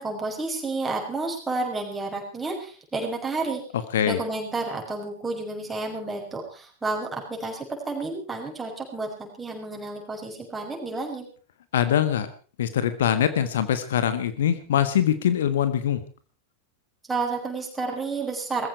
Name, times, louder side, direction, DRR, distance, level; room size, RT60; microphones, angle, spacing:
voice 1, 0.0-3.6 4.0-11.3 17.1-18.7, right 3 dB, 10° right, 1 dB, 6.0 m, -31 dB
voice 2, 11.7-12.3 12.6-16.0, left 9 dB, 60° left, 11 dB, 1.3 m, -23 dB
20.0 x 15.0 x 4.7 m, 0.38 s
figure-of-eight pair, 90°, 0 cm